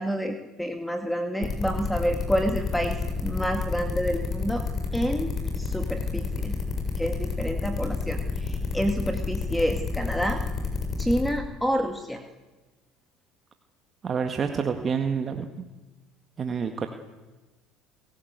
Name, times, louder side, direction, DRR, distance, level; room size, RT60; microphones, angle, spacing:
voice 1, 0.0-4.6 4.9-6.6 7.0-10.4 11.0-12.2, equal, 5° left, 5 dB, 2.1 m, -28 dB
sound 1, 1.4-11.3, left 4 dB, 50° left, 7.7 m, -29 dB
voice 2, 14.0-15.5 16.4-16.9, right 6 dB, 35° right, 5 dB, 1.8 m, -28 dB
29.0 x 16.0 x 8.2 m, 1.2 s
supercardioid pair, 80°, 0 cm